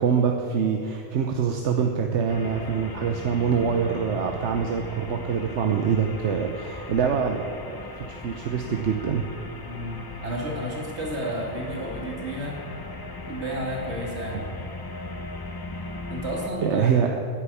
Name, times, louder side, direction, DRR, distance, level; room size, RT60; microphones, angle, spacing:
voice 1, 0.0-9.3 16.6-17.1, right 6 dB, 90° right, 3 dB, 1.1 m, -25 dB
sound 1, 2.3-16.5, left 2 dB, 25° left, 0.7 m, -38 dB
voice 2, 9.7-12.6 13.3-14.5 16.1-17.0, equal, 75° right, -1 dB, 2.7 m, -31 dB
10.0 x 9.8 x 8.5 m, 2.4 s
omnidirectional pair, 1.2 m